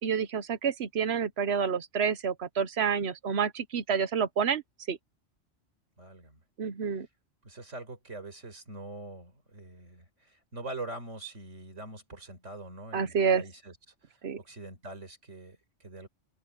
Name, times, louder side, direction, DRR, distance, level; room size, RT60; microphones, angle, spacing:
voice 1, 0.0-4.6 4.9-5.0 6.6-7.1 12.9-13.4 14.2-14.4, right 6 dB, 65° right, 1.1 m, -28 dB
voice 2, 6.0-6.4 7.4-13.8 14.0-16.1, right 2 dB, 80° right, 4.8 m, -44 dB
open air
omnidirectional pair, 1.2 m